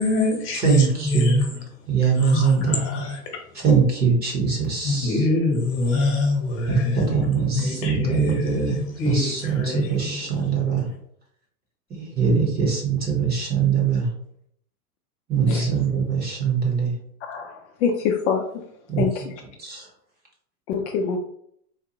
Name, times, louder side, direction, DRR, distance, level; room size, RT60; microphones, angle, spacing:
voice 1, 0.0-1.6 2.2-3.2 4.8-10.2, left 2 dB, 30° left, 2 dB, 1.2 m, -25 dB
voice 2, 0.6-1.5 1.9-2.8 3.6-5.3 6.7-8.8 9.0-10.9 12.0-14.1 15.3-16.9 18.9-19.1 19.6-19.9, right 6 dB, 20° right, 0 dB, 0.9 m, -22 dB
voice 3, 17.3-18.4 19.0-19.2 20.7-21.2, left 6 dB, 50° left, 2 dB, 0.6 m, -25 dB
4.0 x 2.5 x 2.8 m, 0.69 s
hypercardioid pair, 110°, 46 cm